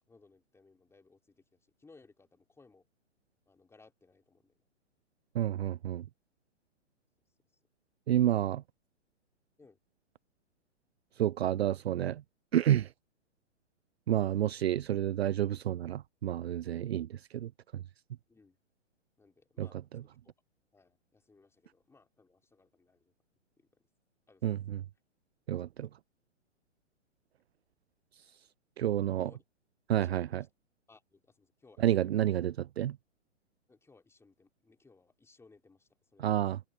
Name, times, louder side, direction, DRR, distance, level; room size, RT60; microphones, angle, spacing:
voice 1, 0.1-2.9 3.5-4.6 9.6-9.8 16.9-17.1 18.3-18.6 19.2-19.9 20.2-20.3 20.7-23.1 23.6-23.8 24.3-24.5 29.2-29.4 30.0-30.5 30.9-32.3 33.7-36.4, left 3 dB, 5° left, 4.8 m, -62 dB
voice 2, 5.3-6.0 8.1-8.6 11.2-12.2 12.5-12.9 14.1-17.1 17.4-17.5 24.4-24.6 25.5-25.9 28.8-29.3 29.9-30.4 31.8-33.0 36.2-36.6, right 11 dB, 55° right, 0.6 m, -29 dB
figure-of-eight pair, 120°, 37 cm